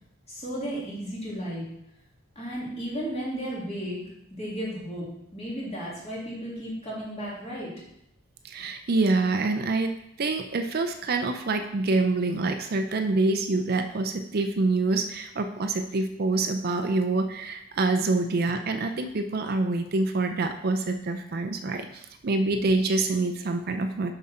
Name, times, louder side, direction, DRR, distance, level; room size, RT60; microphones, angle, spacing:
voice 1, 0.3-1.7 2.3-4.0 4.3-7.7, equal, 30° left, -5 dB, 2.7 m, -34 dB
voice 2, 8.4-24.1, right 3 dB, 45° right, 6 dB, 0.5 m, -26 dB
7.4 x 5.7 x 4.3 m, 0.80 s
head